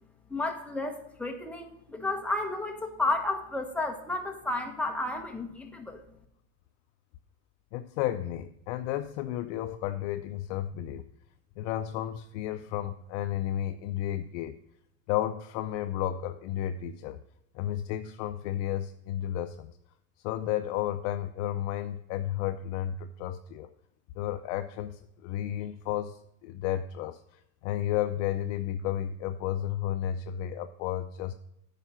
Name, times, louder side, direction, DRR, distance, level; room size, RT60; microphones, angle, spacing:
voice 1, 0.3-6.0, left 2 dB, 5° left, 2 dB, 1.1 m, -32 dB
voice 2, 7.7-11.0 11.6-14.6 15.1-17.2 17.5-19.8 20.2-23.7 24.2-31.3, left 11 dB, 65° left, 9 dB, 0.5 m, -32 dB
8.9 x 5.0 x 5.8 m, 0.80 s
supercardioid pair, 120°, 37 cm